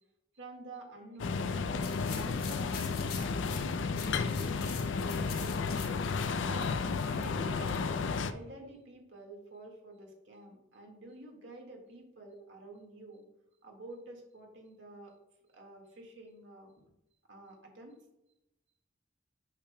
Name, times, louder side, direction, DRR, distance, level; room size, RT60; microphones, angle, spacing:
voice 1, 0.3-5.8 6.2-6.8 7.1-8.0 8.3-13.2 13.6-15.1 15.5-16.7 17.3-18.0, right 2 dB, 75° right, 1 dB, 1.7 m, -50 dB
sound 1, 1.2-8.3, left 4 dB, 75° left, 0.4 m, -32 dB
sound 2, 1.8-8.0, left 5 dB, 55° left, 1.4 m, -46 dB
8.5 x 6.5 x 2.2 m, 0.89 s
head